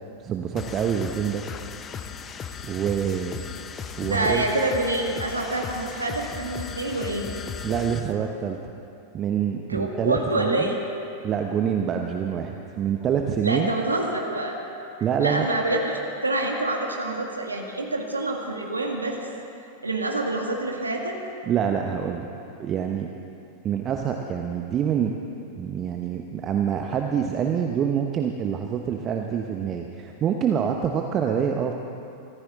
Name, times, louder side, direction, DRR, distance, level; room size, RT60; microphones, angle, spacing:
voice 1, 0.2-1.4 2.6-3.4 4.0-4.5 7.6-8.6 9.1-10.8 11.2-13.7 15.0-15.5 21.5-22.3 22.6-23.1 23.6-25.1 25.6-31.7, right 8 dB, 30° right, 3 dB, 1.0 m, -26 dB
sound 1, 0.6-8.1, left 7 dB, 25° left, 0.8 m, -37 dB
voice 2, 4.0-7.3 9.6-10.8 13.4-14.6 15.2-19.3 19.8-21.2, right 2 dB, 80° right, 1 dB, 2.0 m, -27 dB
25.0 x 14.5 x 3.8 m, 2.6 s
figure-of-eight pair, 90°, 0 cm